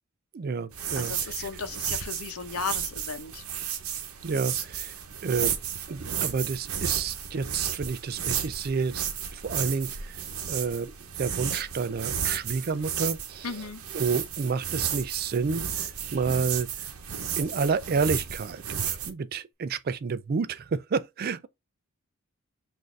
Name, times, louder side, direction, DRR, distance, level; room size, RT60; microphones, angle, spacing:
voice 1, 0.3-1.5 4.2-4.9 5.2-5.6 5.9-9.0 9.3-10.2 10.5-10.9 11.2-13.7 13.9-16.7 17.4-21.5, right 5 dB, 45° right, 0.3 m, -30 dB
sound 1, 0.7-19.1, right 8 dB, 80° right, 0.9 m, -33 dB
voice 2, 1.0-3.4 13.4-13.8, left 5 dB, 80° left, 0.8 m, -35 dB
6.2 x 2.6 x 3.2 m
head